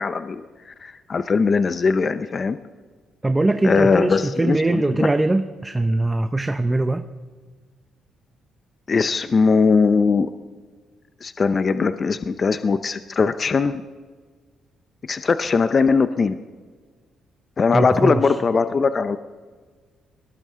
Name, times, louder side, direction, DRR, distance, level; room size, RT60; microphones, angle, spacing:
voice 1, 0.0-2.6 3.6-5.1 8.9-10.3 11.2-13.8 15.1-16.4 17.6-19.2, left 4 dB, 40° left, 11 dB, 0.6 m, -20 dB
voice 2, 3.2-7.1 17.7-18.4, right 2 dB, 15° right, 9 dB, 0.6 m, -21 dB
21.0 x 18.5 x 3.7 m, 1.5 s
cardioid pair, 90°, 0 cm